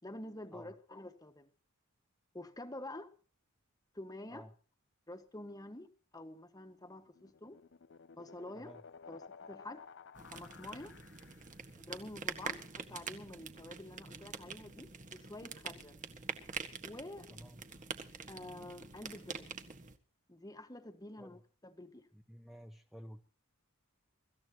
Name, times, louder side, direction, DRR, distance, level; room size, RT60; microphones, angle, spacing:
voice 1, 0.0-1.5 2.3-3.1 3.9-4.4 5.1-7.6 8.1-8.7 9.1-9.9 10.3-10.9 11.8-16.0 16.8-17.3 18.3-19.5 20.3-22.1, left 1 dB, 15° left, 1.5 m, -48 dB
sound 1, 6.9-11.7, left 5 dB, 55° left, 0.6 m, -55 dB
sound 2, 10.1-20.0, right 5 dB, 35° right, 1.6 m, -45 dB
voice 2, 17.3-17.6 21.2-21.4 22.1-23.2, equal, ahead, 1.1 m, -52 dB
24.5 x 14.5 x 3.0 m
head